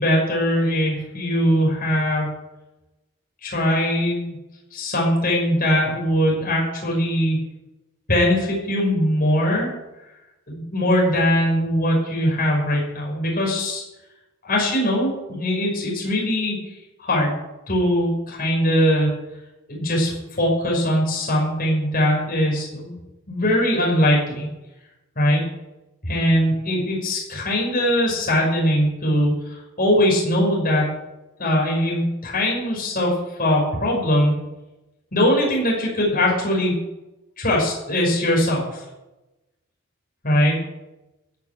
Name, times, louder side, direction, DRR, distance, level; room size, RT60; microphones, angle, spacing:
voice 1, 0.0-2.3 3.4-4.4 4.7-7.4 8.1-9.7 10.5-13.8 14.4-16.6 17.0-17.4 17.7-19.2 19.7-22.9 23.3-24.5 25.2-25.4 26.0-30.9 31.4-33.1 33.4-34.4 35.1-36.7 37.4-38.8 40.2-40.6, equal, 45° left, -2 dB, 5.8 m, -21 dB
16.0 x 7.3 x 9.3 m, 0.97 s
head